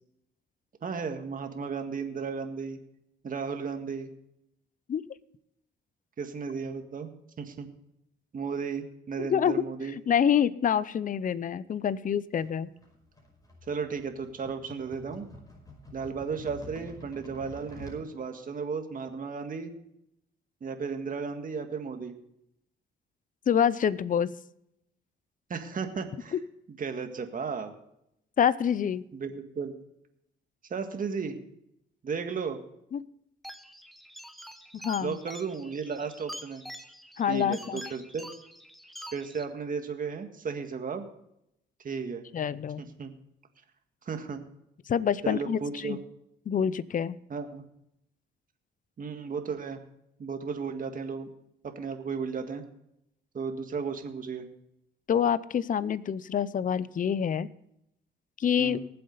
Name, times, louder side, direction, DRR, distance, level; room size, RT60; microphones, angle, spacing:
voice 1, 0.8-2.8 3.2-4.1 6.2-7.1 7.4-7.7 8.3-9.9 13.6-15.3 15.9-19.7 20.6-22.1 25.5-26.3 26.8-27.7 29.1-29.7 30.7-31.4 32.0-32.6 35.0-36.6 37.3-38.3 39.1-41.0 41.8-42.2 42.8-43.1 44.0-44.4 45.2-46.0 47.3-47.6 49.0-49.8 50.2-51.3 51.6-52.6 53.3-54.5 58.6-58.8, right 5 dB, 45° right, 5 dB, 1.8 m, -34 dB
voice 2, 10.1-12.7 23.5-24.3 26.3-26.4 28.4-29.0 32.9-33.0 34.8-35.2 37.2-37.8 42.3-42.8 44.9-46.0 46.5-47.2 55.1-57.5 58.4-58.8, left 8 dB, 40° left, 17 dB, 0.6 m, -26 dB
sound 1, 12.4-18.0, left 1 dB, 20° left, 5.5 m, -48 dB
sound 2, 33.4-39.5, equal, ahead, 1.1 m, -46 dB
19.5 x 7.8 x 4.0 m, 0.77 s
cardioid pair, 90°, 20 cm